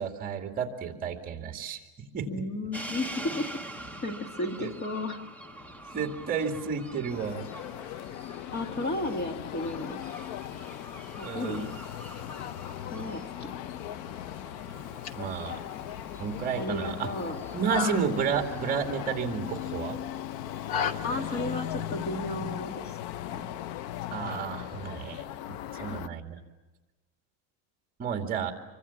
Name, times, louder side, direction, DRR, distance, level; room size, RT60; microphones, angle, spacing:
voice 1, 0.0-1.8 2.1-2.4 4.6-4.7 5.9-7.5 11.2-11.7 15.2-15.6 16.1-17.1 17.5-20.0 24.1-26.4 28.0-28.5, right 6 dB, 25° right, 5 dB, 2.3 m, -31 dB
voice 2, 2.3-3.6 4.0-5.2 8.5-10.0 11.2-11.8 12.9-13.5 16.6-17.4 17.9-18.1 21.0-23.0 23.3-23.6 25.7-26.0, left 2 dB, 30° left, 6 dB, 2.0 m, -34 dB
sound 1, 2.7-19.1, right 1 dB, 5° left, 0.8 m, -45 dB
sound 2, 7.1-26.1, left 12 dB, 65° left, 0.7 m, -38 dB
sound 3, 14.7-20.9, left 7 dB, 50° left, 1.2 m, -37 dB
26.5 x 24.0 x 7.2 m, 1.2 s
cardioid pair, 170°, 33 cm